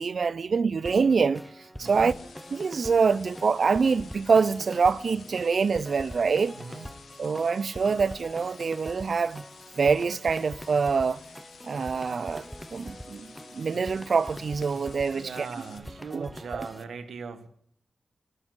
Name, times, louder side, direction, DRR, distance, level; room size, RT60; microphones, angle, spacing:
voice 1, 0.0-1.4 1.8-2.1 2.5-6.5 7.2-9.4 9.8-11.2 11.6-12.5 12.7-13.3 13.5-15.5 16.1-16.7, right 5 dB, 55° right, 0.4 m, -25 dB
sound 1, 0.9-16.8, equal, 5° left, 0.6 m, -44 dB
sound 2, 1.8-15.8, left 5 dB, 90° left, 1.2 m, -52 dB
voice 2, 1.8-2.1 6.5-6.9 15.1-17.5, right 5 dB, 90° right, 1.3 m, -39 dB
11.0 x 9.9 x 9.4 m
wide cardioid pair, 115°, 0 cm